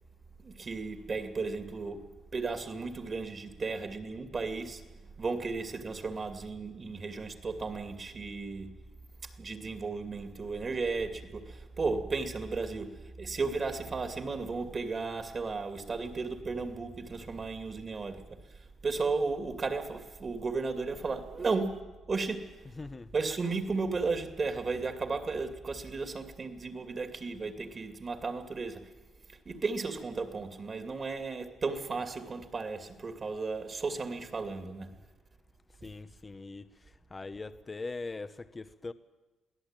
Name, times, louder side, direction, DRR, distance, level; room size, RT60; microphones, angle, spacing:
voice 1, 0.4-2.1 2.3-8.7 9.2-21.8 22.1-22.6 23.1-28.9 29.4-34.9, right 4 dB, 40° right, 2.5 m, -34 dB
voice 2, 22.6-23.1 35.8-36.7 37.1-38.9, left 3 dB, 25° left, 1.0 m, -41 dB
23.5 x 16.5 x 9.0 m
cardioid pair, 90°, 0 cm